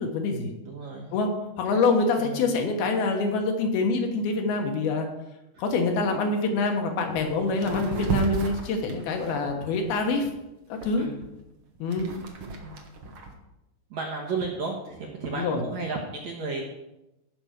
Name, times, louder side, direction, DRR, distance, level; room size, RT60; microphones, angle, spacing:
voice 1, 0.0-0.5 1.1-1.3 1.6-5.1 5.6-10.3 10.7-11.1 11.8-12.1 15.3-15.6, left 3 dB, 75° left, 3 dB, 3.1 m, -25 dB
voice 2, 0.6-1.1 2.2-2.5 5.5-5.6 7.5-8.0 11.0-11.3 12.6-12.8 13.9-16.6, right 4 dB, 60° right, -1 dB, 2.0 m, -34 dB
sound 1, 6.6-6.7 7.1-7.3 7.6-10.3 10.8-13.3, right 4 dB, 85° right, 1.1 m, -31 dB
16.0 x 6.0 x 5.1 m, 0.94 s
omnidirectional pair, 4.7 m